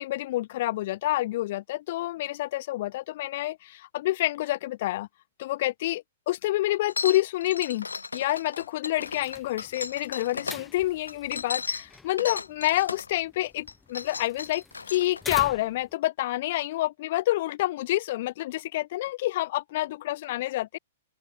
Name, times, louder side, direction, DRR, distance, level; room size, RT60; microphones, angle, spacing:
voice 1, 0.0-5.1 5.4-7.9 8.1-20.8, left 16 dB, 45° left, 6.0 m, -28 dB
sound 1, 6.9-10.6 11.1-13.1 13.6-15.4, left 4 dB, 75° left, 6.2 m, -35 dB
sound 2, 9.0-15.9, left 3 dB, 10° left, 6.3 m, -46 dB
open air
figure-of-eight pair, 110°, 0 cm